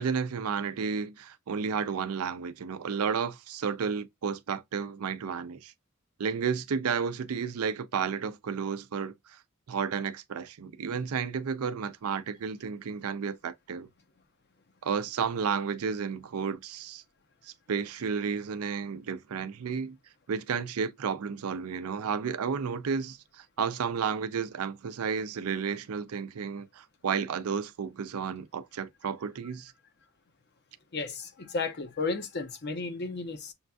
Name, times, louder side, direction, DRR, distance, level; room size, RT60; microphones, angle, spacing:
voice 1, 0.0-5.7 6.2-9.1 9.7-13.9 14.8-17.0 17.4-20.0 20.3-29.7, right 6 dB, 85° right, 0.5 m, -32 dB
voice 2, 30.9-33.5, left 3 dB, 50° left, 0.7 m, -33 dB
6.9 x 2.5 x 2.2 m
head